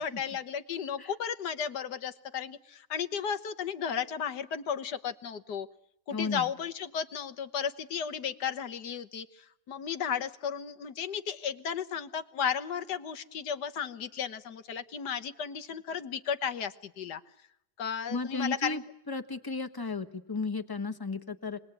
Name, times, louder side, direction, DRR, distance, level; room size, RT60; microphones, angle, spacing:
voice 1, 0.0-5.7 6.1-17.2 17.8-18.8, left 7 dB, 80° left, 8 dB, 1.8 m, -34 dB
voice 2, 6.1-6.5 18.1-21.6, left 3 dB, 15° left, 8 dB, 1.2 m, -34 dB
28.0 x 21.0 x 9.1 m, 0.79 s
omnidirectional pair, 1.7 m